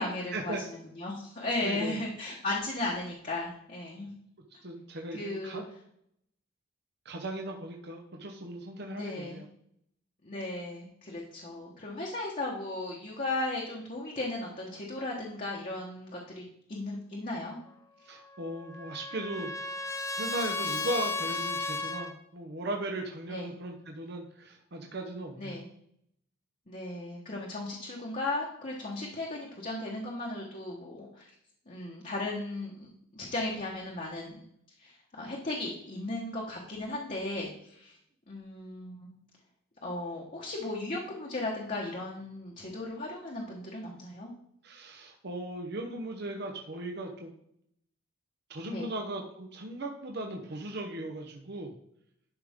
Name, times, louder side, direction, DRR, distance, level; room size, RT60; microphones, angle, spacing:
voice 1, 0.0-4.1 4.5-4.6 5.1-5.6 8.9-9.4 10.2-16.4 16.7-17.6 23.3-23.5 25.4-25.7 26.7-31.3 31.7-34.4 34.8-38.0 38.3-39.1 39.8-44.3 48.6-48.9, left 2 dB, 35° left, -3 dB, 1.2 m, -36 dB
voice 2, 1.6-2.0 4.6-5.6 7.0-9.4 18.1-19.5 20.2-25.6 44.6-47.3 48.5-51.7, right 1 dB, 50° right, 2 dB, 0.9 m, -37 dB
Trumpet, 18.2-22.1, left 3 dB, 15° left, 0.5 m, -34 dB
11.5 x 5.2 x 3.6 m, 0.71 s
head